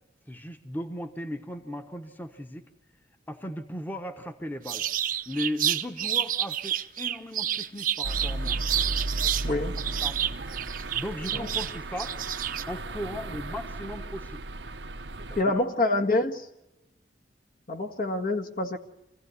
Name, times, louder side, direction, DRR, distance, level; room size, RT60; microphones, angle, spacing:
voice 1, 0.3-2.6 3.3-4.8 5.3-8.6 9.2-9.5 10.0-10.2 10.9-12.1 12.7-14.4 15.2-15.5, left 1 dB, 10° left, 6 dB, 1.2 m, -37 dB
sound 1, 4.7-9.5 9.8-12.6, right 10 dB, 50° right, 0.8 m, -29 dB
sound 2, 8.0-15.4, right 2 dB, 90° right, 1.1 m, -35 dB
voice 2, 15.4-16.5 17.7-18.8, left 2 dB, 50° left, 3 dB, 1.7 m, -26 dB
26.5 x 16.5 x 9.6 m, 0.96 s
head